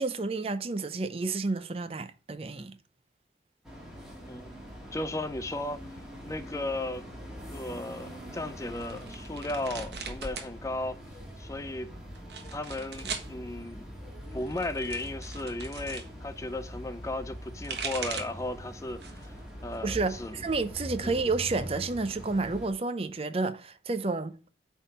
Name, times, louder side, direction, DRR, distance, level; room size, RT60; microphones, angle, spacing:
voice 1, 0.0-2.8 19.8-24.5, right 3 dB, 35° right, 0.5 m, -30 dB
sound 1, 3.6-22.7, equal, 5° right, 1.9 m, -43 dB
voice 2, 4.9-5.9 6.3-7.1 7.5-11.0 11.4-11.9 12.5-14.0 14.3-20.4 21.0-21.1, left 2 dB, 15° left, 0.4 m, -35 dB
sound 2, 8.8-10.5 10.8-11.5 12.2-13.3 14.3-16.1 17.3-18.5 18.9-19.4 19.7-20.7, right 5 dB, 75° right, 1.3 m, -40 dB
8.7 x 3.6 x 5.5 m
head